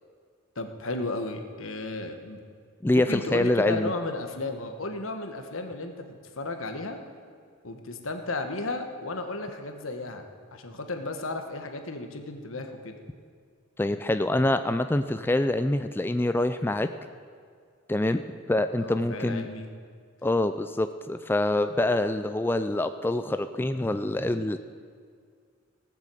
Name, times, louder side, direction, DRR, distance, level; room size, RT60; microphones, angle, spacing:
voice 1, 0.5-2.4 2.9-7.0 7.6-10.2 10.5-13.0 18.8-19.7, left 2 dB, 85° left, 6 dB, 1.4 m, -34 dB
voice 2, 2.8-3.9 13.8-16.9 17.9-18.2 18.5-19.5 20.2-24.6, left 1 dB, 10° left, 9 dB, 0.3 m, -25 dB
18.0 x 7.4 x 7.7 m, 2.1 s
head